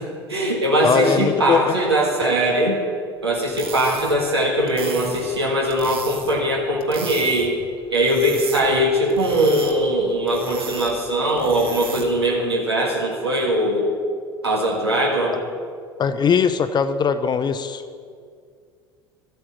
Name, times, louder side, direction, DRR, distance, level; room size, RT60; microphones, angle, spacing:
voice 1, 0.0-2.8 3.2-7.5 7.9-13.9 14.4-15.3, right 1 dB, 85° right, -2 dB, 1.6 m, -21 dB
voice 2, 0.8-1.7 16.0-17.8, left 6 dB, 35° left, 11 dB, 0.7 m, -20 dB
sound 1, 3.4-12.3, right 5 dB, 45° right, 1.6 m, -36 dB
12.5 x 8.7 x 7.4 m, 2.2 s
figure-of-eight pair, 65°, 13 cm